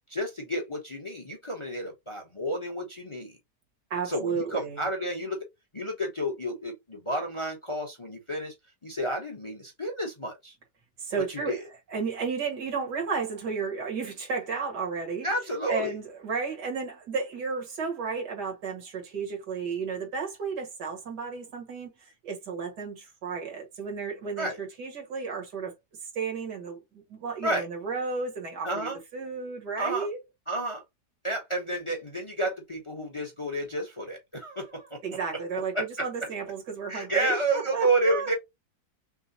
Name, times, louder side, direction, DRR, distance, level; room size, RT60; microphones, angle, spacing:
voice 1, 0.1-3.4 4.0-5.5 5.7-8.5 8.8-10.5 11.3-11.6 15.2-15.9 24.4-24.6 27.4-27.6 28.6-29.0 29.8-30.1 30.5-30.8 31.2-35.0 35.7-36.1 36.9-38.3, right 1 dB, 25° left, 0.8 m, -30 dB
voice 2, 3.9-4.9 11.0-11.6 11.9-15.3 15.7-25.7 26.1-30.2 35.0-38.3, right 5 dB, 80° right, 2.2 m, -33 dB
5.9 x 2.3 x 2.7 m
omnidirectional pair, 1.8 m